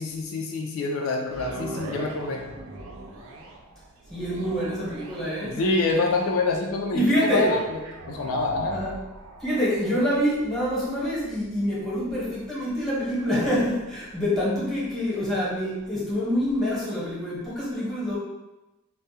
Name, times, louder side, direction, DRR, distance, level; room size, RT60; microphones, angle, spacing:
voice 1, 0.0-2.4 5.4-7.6 8.1-8.8, left 3 dB, 80° left, 1 dB, 0.4 m, -26 dB
sound 1, 1.2-15.4 16.0-16.1, right 2 dB, 70° right, 0.4 m, -42 dB
voice 2, 4.1-5.7 6.9-7.5 8.7-9.0 9.4-18.2, equal, ahead, -10 dB, 0.9 m, -26 dB
2.3 x 2.1 x 2.7 m, 1.0 s
head